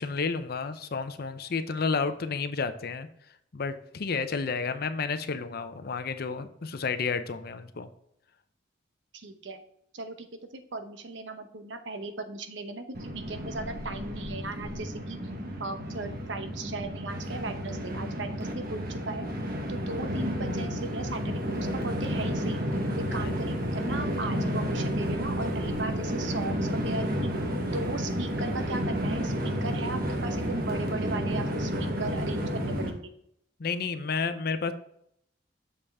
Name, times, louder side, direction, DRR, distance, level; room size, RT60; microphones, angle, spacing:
voice 1, 0.0-3.1 3.5-7.9 23.1-23.4 33.6-34.7, left 4 dB, 55° left, 11 dB, 0.6 m, -31 dB
voice 2, 9.1-9.6 9.9-10.3 10.5-15.2 15.6-19.3 19.7-22.6 23.1-27.3 27.7-33.1, right 3 dB, 80° right, 8 dB, 0.9 m, -37 dB
Train, 12.9-32.9, equal, 55° right, 1.2 m, -31 dB
6.8 x 5.5 x 3.5 m, 0.73 s
head